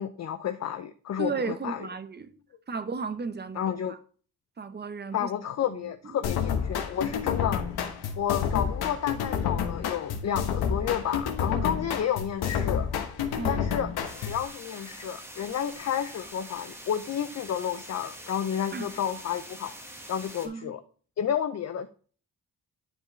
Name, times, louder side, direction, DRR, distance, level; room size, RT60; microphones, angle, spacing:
voice 1, 0.0-1.9 3.6-4.0 5.1-7.6 8.2-12.9 13.5-13.9 14.2-19.7 20.1-20.8 21.2-21.9, left 9 dB, 45° left, 0.5 m, -31 dB
voice 2, 1.2-2.3 2.7-4.0 4.6-5.3 6.0-6.2 11.5-11.7 13.4-13.6 18.7-18.9 20.4-20.7, right 4 dB, 30° right, 0.7 m, -34 dB
sound 1, 6.2-14.5, left 7 dB, 90° left, 1.0 m, -29 dB
sound 2, 14.0-20.5, equal, 5° right, 1.3 m, -44 dB
9.8 x 4.9 x 3.1 m
cardioid pair, 95°, 37 cm